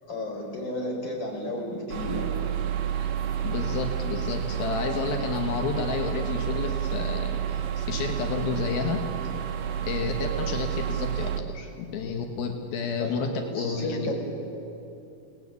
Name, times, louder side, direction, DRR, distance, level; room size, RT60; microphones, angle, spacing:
voice 1, 0.0-2.3 13.0-14.1, left 1 dB, 30° left, -1 dB, 5.6 m, -33 dB
sound 1, 1.9-11.4, right 9 dB, 80° right, 3.2 m, -30 dB
voice 2, 3.4-9.0 9.8-14.1, left 5 dB, 80° left, 3 dB, 3.2 m, -31 dB
29.0 x 19.0 x 8.3 m, 2.9 s
omnidirectional pair, 4.3 m